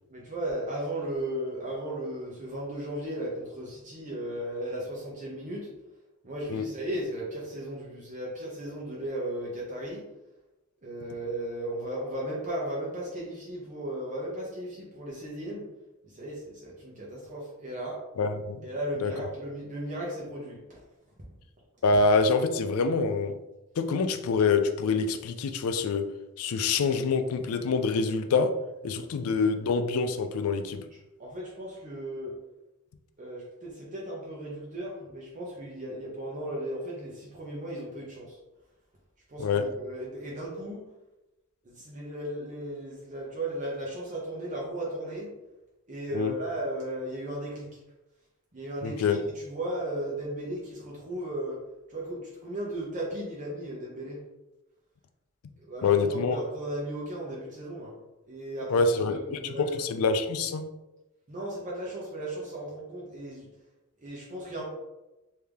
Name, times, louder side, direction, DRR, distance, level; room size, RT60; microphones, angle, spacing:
voice 1, 0.1-5.7 6.2-10.0 10.8-15.7 16.0-18.0 18.6-20.6 28.9-29.3 31.2-32.3 33.2-38.4 39.3-40.8 41.6-45.3 45.9-47.8 48.5-51.6 51.9-54.2 55.6-57.9 58.3-59.8 61.3-63.5 64.0-64.7, right 1 dB, 35° right, -4 dB, 0.8 m, -36 dB
voice 2, 18.2-18.7 19.0-19.1 21.8-23.4 23.8-26.1 26.4-28.6 28.8-30.8 39.4-39.7 46.1-46.3 48.8-49.2 55.8-56.4 58.7-60.7, left 4 dB, 75° left, 8 dB, 0.4 m, -26 dB
3.4 x 2.8 x 3.5 m, 1.0 s
head